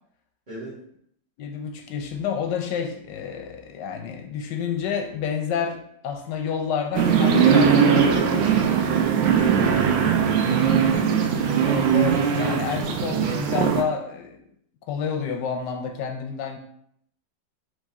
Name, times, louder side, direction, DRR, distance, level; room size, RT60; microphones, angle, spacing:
voice 1, 0.5-0.8 9.6-11.8, equal, 25° right, -8 dB, 1.7 m, -37 dB
voice 2, 1.4-8.8 11.7-14.4 14.8-16.6, left 7 dB, 75° left, 4 dB, 1.2 m, -29 dB
sound 1, 6.9-13.8, right 7 dB, 90° right, 1.3 m, -20 dB
4.1 x 3.5 x 3.5 m, 0.70 s
omnidirectional pair, 2.1 m